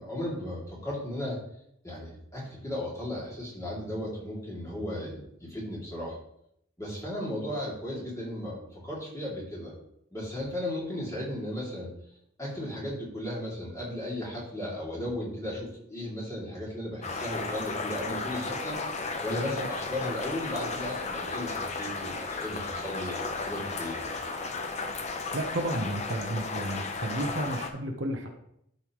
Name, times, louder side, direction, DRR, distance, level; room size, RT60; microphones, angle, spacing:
voice 1, 0.0-1.4 1.8-6.2 6.8-9.7 10.1-11.9 12.4-18.8 19.2-24.1, left 1 dB, 15° left, -5 dB, 2.7 m, -35 dB
sound 1, 17.0-27.7, left 3 dB, 30° left, 0.7 m, -34 dB
voice 2, 25.3-28.3, right 1 dB, 55° right, 3 dB, 0.9 m, -32 dB
12.0 x 5.5 x 3.1 m, 0.75 s
head